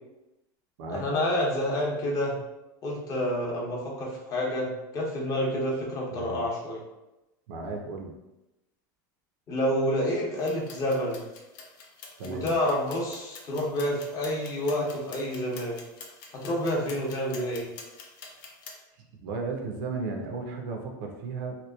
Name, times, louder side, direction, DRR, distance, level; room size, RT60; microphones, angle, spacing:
voice 1, 0.9-2.4 2.8-6.8 9.5-11.2 12.2-15.8 16.3-17.7, equal, 35° left, -2 dB, 0.7 m, -28 dB
voice 2, 6.1-6.5 7.5-8.1 12.2-12.5 19.2-21.6, right 4 dB, 75° right, 2 dB, 0.5 m, -35 dB
sound 1, 10.4-18.7, left 4 dB, 80° left, 0.5 m, -47 dB
2.9 x 2.1 x 2.2 m, 0.98 s
supercardioid pair, 130°, 11 cm